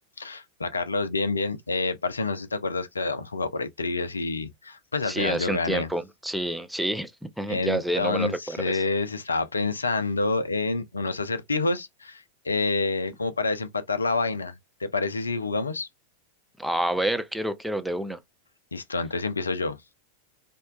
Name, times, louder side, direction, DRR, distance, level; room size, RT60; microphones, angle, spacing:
voice 1, 0.2-5.9 7.5-15.9 18.7-19.8, left 3 dB, 75° left, 0.4 m, -28 dB
voice 2, 5.1-8.8 16.6-18.2, right 1 dB, ahead, 0.3 m, -28 dB
2.8 x 2.2 x 2.3 m
figure-of-eight pair, 90°, 0 cm